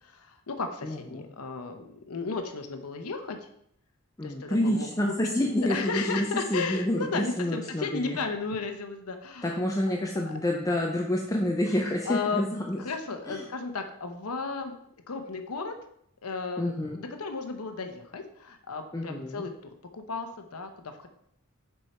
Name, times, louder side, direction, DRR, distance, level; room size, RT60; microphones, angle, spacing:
voice 1, 0.0-3.4 4.2-4.9 5.7-9.6 10.3-10.4 12.1-12.4 12.8-14.7 15.1-15.7 16.2-19.5 19.9-21.1, left 4 dB, 85° left, 6 dB, 0.8 m, -34 dB
voice 2, 0.8-1.2 4.2-8.2 9.4-12.8 13.3-13.5 16.6-17.0 18.9-19.5, left 1 dB, 15° left, 1 dB, 0.5 m, -28 dB
6.5 x 4.6 x 4.3 m, 0.71 s
head